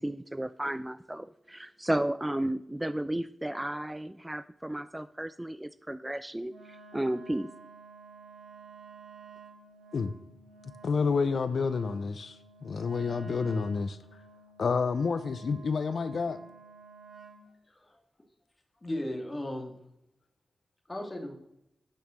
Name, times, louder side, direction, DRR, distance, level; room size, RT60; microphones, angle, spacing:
voice 1, 0.0-7.5, right 1 dB, 10° right, 0.3 m, -33 dB
Wind instrument woodwind instrument, 6.5-17.5, right 4 dB, 65° right, 4.2 m, -51 dB
voice 2, 10.6-14.0 14.6-16.4, left 5 dB, 75° left, 0.5 m, -29 dB
voice 3, 17.7-18.0 18.8-19.7 20.9-21.4, left 1 dB, 25° left, 1.9 m, -36 dB
8.9 x 5.3 x 6.2 m
wide cardioid pair, 80°, 0 cm